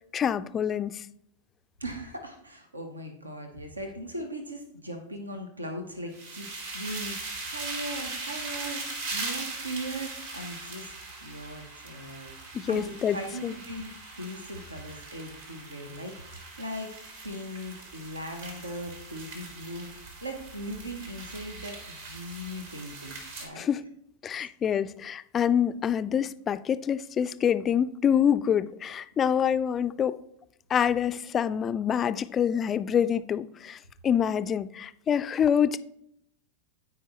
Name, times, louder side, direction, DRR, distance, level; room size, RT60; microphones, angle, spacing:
voice 1, 0.1-1.1 12.5-13.2 13.4-13.5 23.6-23.8 24.2-30.2 30.7-35.8, left 8 dB, 25° left, 0.3 m, -26 dB
voice 2, 1.8-12.3 12.7-17.0 17.2-23.7 24.3-24.5, right 1 dB, 80° right, 0.9 m, -39 dB
sound 1, 6.1-23.5, right 3 dB, 65° right, 2.4 m, -40 dB
13.0 x 4.9 x 3.0 m
figure-of-eight pair, 90°, 0 cm